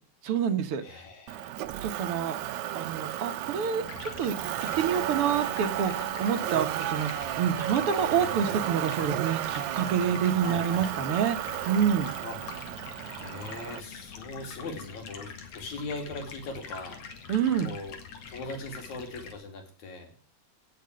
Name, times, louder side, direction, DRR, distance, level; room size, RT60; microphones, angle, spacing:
voice 1, 0.2-0.8 1.8-2.4 2.7-4.4 4.8-12.1 17.3-17.7, right 8 dB, 55° right, 9 dB, 2.0 m, -27 dB
voice 2, 0.8-1.5 10.4-10.8 12.2-12.4 13.1-17.0 17.6-18.0 18.3-20.1, left 3 dB, 75° left, 5 dB, 4.1 m, -40 dB
Motor vehicle (road), 1.3-13.8, right 12 dB, 80° right, 2.1 m, -33 dB
Stream, 3.8-19.3, left 6 dB, 60° left, 2.8 m, -44 dB
17.0 x 6.9 x 6.4 m, 0.43 s
omnidirectional pair, 3.4 m